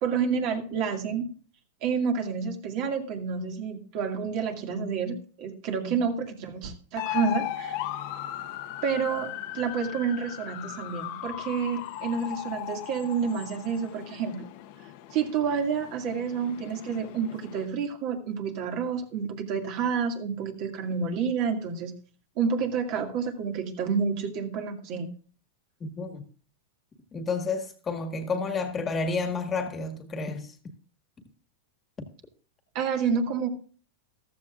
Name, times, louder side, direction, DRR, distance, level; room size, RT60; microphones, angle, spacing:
voice 1, 0.0-1.3 1.8-7.8 8.8-14.5 15.1-21.9 22.4-25.1 32.7-33.5, right 6 dB, 50° right, 2.1 m, -29 dB
sound 1, 7.0-17.7, left 14 dB, 55° left, 1.0 m, -37 dB
voice 2, 27.1-30.6, left 4 dB, 20° left, 1.7 m, -30 dB
14.5 x 13.0 x 2.5 m
supercardioid pair, 135°, 0 cm